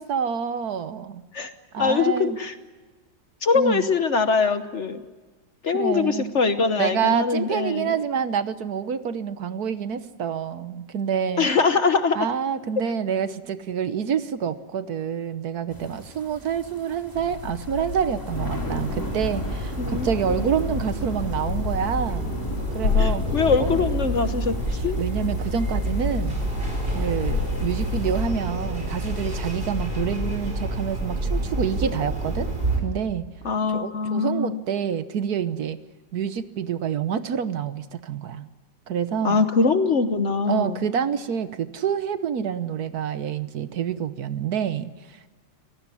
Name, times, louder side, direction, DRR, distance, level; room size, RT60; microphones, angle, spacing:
voice 1, 0.0-1.2 1.7-2.4 3.5-3.9 5.7-6.3 6.8-11.5 12.1-22.4 22.7-23.2 23.6-23.8 24.7-26.4 26.9-32.5 32.8-33.2 33.6-35.8 36.1-38.5 38.9-39.4 40.5-45.3, right 7 dB, 65° right, 12 dB, 1.4 m, -27 dB
voice 2, 1.3-2.5 3.4-5.0 5.6-7.9 11.4-12.2 19.8-20.1 23.0-24.5 24.8-25.0 33.4-34.6 39.2-40.8, left 4 dB, 50° left, 10 dB, 1.1 m, -22 dB
sound 1, 15.7-28.3, left 1 dB, 10° left, 2.2 m, -39 dB
sound 2, 17.1-30.4, left 7 dB, 70° left, 1.7 m, -33 dB
sound 3, 18.3-32.8, right 1 dB, 30° right, 5.1 m, -28 dB
25.0 x 18.0 x 9.8 m, 1.3 s
omnidirectional pair, 1.9 m